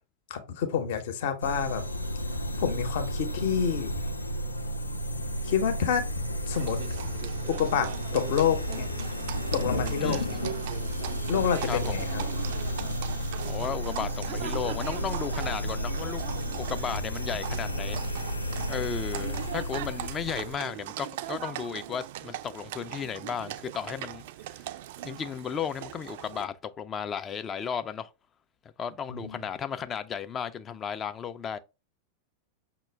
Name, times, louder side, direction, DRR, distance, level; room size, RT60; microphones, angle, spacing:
voice 1, 0.3-1.8 2.6-4.0 5.4-6.1 6.5-6.8 7.0-7.1 7.5-8.9 9.5-10.4 11.3-12.2 29.1-29.4, left 7 dB, 55° left, 0.7 m, -28 dB
sound 1, 1.4-20.6, equal, 85° left, 0.5 m, -33 dB
Livestock farm animals working animals, 6.5-26.4, right 14 dB, 55° right, 0.3 m, -40 dB
Thunder, 9.3-19.0 19.2-20.0, left 2 dB, 90° right, 0.6 m, -41 dB
voice 2, 10.0-10.5 11.6-12.1 13.4-16.2 16.6-18.0 18.7-24.6 25.0-28.1 28.8-31.6, left 7 dB, 25° left, 0.3 m, -34 dB
5.9 x 2.2 x 3.3 m
figure-of-eight pair, 90°, 0 cm